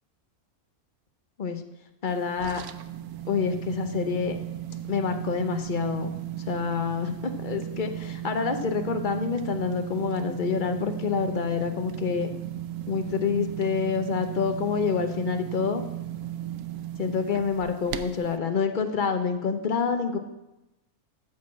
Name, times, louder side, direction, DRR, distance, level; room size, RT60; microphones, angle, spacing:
voice 1, 2.0-2.6 3.3-4.4 4.9-6.1 6.5-12.3 12.9-15.8 17.0-20.2, left 6 dB, 40° left, 7 dB, 0.8 m, -27 dB
sound 1, 2.1-18.4, right 12 dB, 90° right, 1.1 m, -36 dB
13.0 x 4.6 x 7.3 m, 0.96 s
omnidirectional pair, 1.6 m